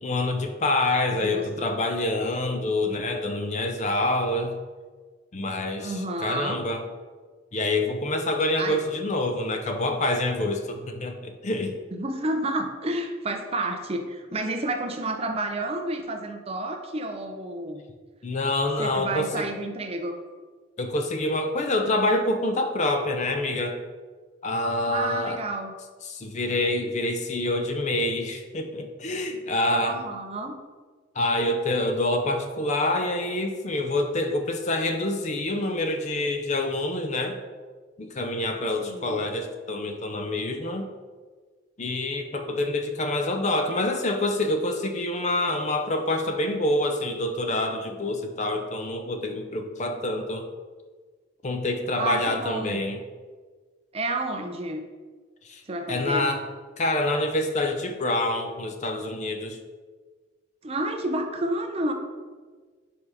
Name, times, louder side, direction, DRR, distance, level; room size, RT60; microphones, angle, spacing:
voice 1, 0.0-4.5 5.3-6.8 7.5-11.8 18.2-19.5 20.8-23.8 24.4-25.4 26.0-30.0 31.2-37.4 38.0-40.9 41.8-50.4 51.4-53.0 55.4-55.6 55.9-56.4 56.8-59.6, left 1 dB, 35° left, 6 dB, 0.5 m, -26 dB
voice 2, 1.1-1.7 5.8-6.6 8.6-8.8 11.9-17.8 18.8-20.2 24.9-25.8 29.8-30.6 38.8-39.2 52.0-52.8 53.9-54.8 55.7-56.3 60.6-61.9, right 2 dB, 30° right, 5 dB, 0.5 m, -30 dB
5.3 x 4.7 x 4.8 m, 1.5 s
head